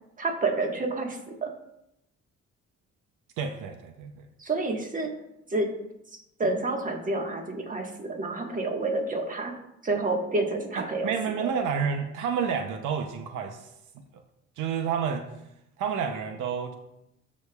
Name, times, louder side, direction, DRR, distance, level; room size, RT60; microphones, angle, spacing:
voice 1, 0.2-1.5 4.4-5.2 5.5-5.8 6.1-9.6 9.8-11.5, right 2 dB, 25° right, 2 dB, 1.4 m, -29 dB
voice 2, 3.4-4.3 10.8-13.6 14.6-15.2 15.8-16.7, right 6 dB, 90° right, 6 dB, 0.7 m, -29 dB
13.0 x 5.1 x 2.3 m, 0.82 s
cardioid pair, 90°, 30 cm